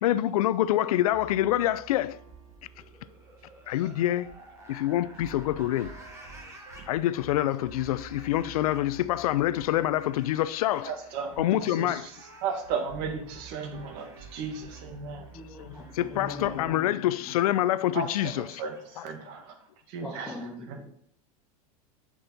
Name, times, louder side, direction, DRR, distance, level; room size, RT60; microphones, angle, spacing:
voice 1, 0.0-2.2 3.7-4.3 4.7-5.9 6.8-10.9 11.4-12.0 15.6-15.7 16.0-18.6, left 13 dB, 85° left, 0.5 m, -26 dB
sound 1, 1.1-16.7, right 4 dB, 85° right, 3.2 m, -50 dB
grudge croak sound, 2.7-19.7, right 1 dB, 15° right, 1.7 m, -54 dB
voice 2, 6.4-6.9 10.8-15.3 17.9-19.6 19.9-20.3 20.7-20.8, right 5 dB, 60° right, 1.8 m, -36 dB
voice 3, 15.3-17.4 20.0-20.9, left 1 dB, ahead, 2.4 m, -42 dB
7.9 x 6.1 x 4.0 m
supercardioid pair, 115°, 18 cm